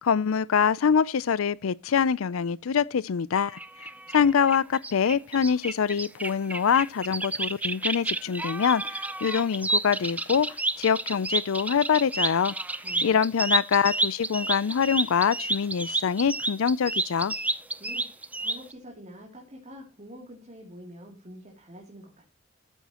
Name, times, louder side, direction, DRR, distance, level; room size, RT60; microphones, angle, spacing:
voice 1, 0.0-3.6 4.1-12.5 13.0-17.3, left 7 dB, 90° left, 0.5 m, -24 dB
sound 1, 3.3-18.7, right 2 dB, 10° right, 0.5 m, -30 dB
voice 2, 12.8-13.2 17.8-22.3, equal, 35° right, 2.9 m, -46 dB
13.5 x 9.1 x 2.9 m
head